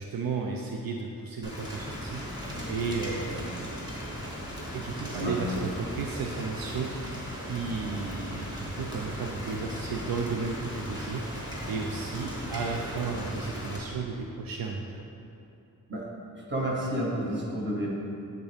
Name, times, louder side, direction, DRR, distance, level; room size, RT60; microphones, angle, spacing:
voice 1, 0.0-3.7 4.7-7.2 7.5-14.8, right 4 dB, 75° right, 1 dB, 0.5 m, -34 dB
Rain, 1.4-13.8, equal, 10° right, 1.4 m, -37 dB
voice 2, 5.1-5.4 9.7-9.8 15.9-17.9, right 1 dB, 30° right, -4 dB, 1.4 m, -31 dB
9.5 x 4.0 x 3.4 m, 2.7 s
wide cardioid pair, 95°, 35 cm